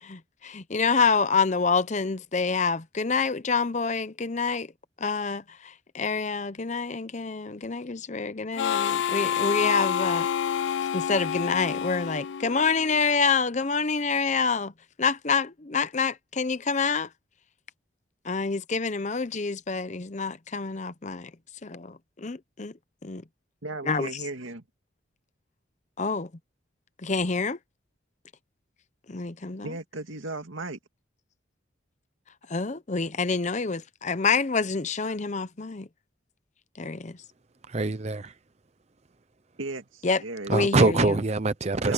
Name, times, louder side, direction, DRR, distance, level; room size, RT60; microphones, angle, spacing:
voice 1, 0.0-4.7 5.0-10.3 10.9-14.7 15.0-17.1 18.2-21.3 21.6-22.7 23.0-23.2 23.9-24.2 26.0-26.3 27.0-27.6 29.1-29.7 32.5-35.9 36.8-37.2 40.0-40.2 40.5-41.1, left 4 dB, 35° left, 0.7 m, -27 dB
Harmonica, 8.6-13.0, left 8 dB, 65° left, 0.4 m, -28 dB
voice 2, 23.6-24.6 29.6-30.8 39.6-40.7 41.8-41.9, right 2 dB, 85° right, 2.2 m, -36 dB
voice 3, 37.7-38.3 40.5-41.9, right 3 dB, 35° right, 0.6 m, -24 dB
head